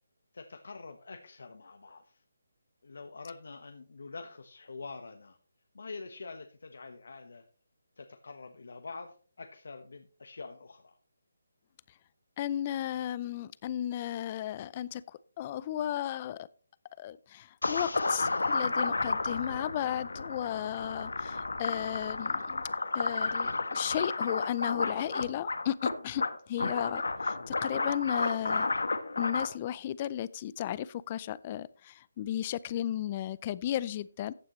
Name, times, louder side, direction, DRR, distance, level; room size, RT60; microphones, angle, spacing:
voice 1, 0.3-2.2 2.8-5.4 5.7-7.4 8.0-10.9, left 4 dB, 70° left, 5 dB, 1.2 m, -46 dB
voice 2, 12.4-16.5 17.0-22.6 22.9-28.7 29.2-34.3, left 11 dB, 25° left, 20 dB, 0.4 m, -34 dB
sound 1, 17.6-29.5, left 3 dB, 90° left, 1.3 m, -32 dB
14.5 x 8.8 x 3.1 m, 0.41 s
hypercardioid pair, 170°, 0 cm